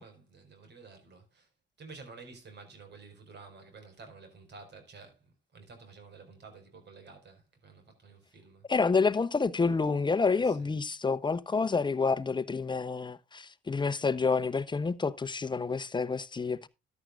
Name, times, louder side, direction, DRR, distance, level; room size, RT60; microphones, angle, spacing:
voice 1, 0.0-1.5 1.8-8.7 10.3-10.8, right 4 dB, 60° right, 4.9 m, -51 dB
voice 2, 8.7-16.7, left 4 dB, 25° left, 0.9 m, -28 dB
13.5 x 11.0 x 2.4 m
cardioid pair, 90°, 20 cm